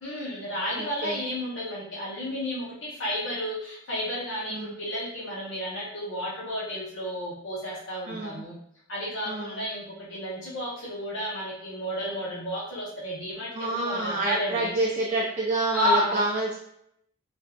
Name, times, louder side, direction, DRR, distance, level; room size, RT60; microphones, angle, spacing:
voice 1, 0.0-8.5 8.9-14.7 15.7-16.2, equal, 65° left, -6 dB, 0.8 m, -32 dB
voice 2, 0.8-1.2 4.5-4.7 8.1-8.4 9.3-9.7 13.6-16.6, right 2 dB, 30° right, -4 dB, 0.4 m, -28 dB
3.3 x 2.6 x 2.3 m, 0.75 s
head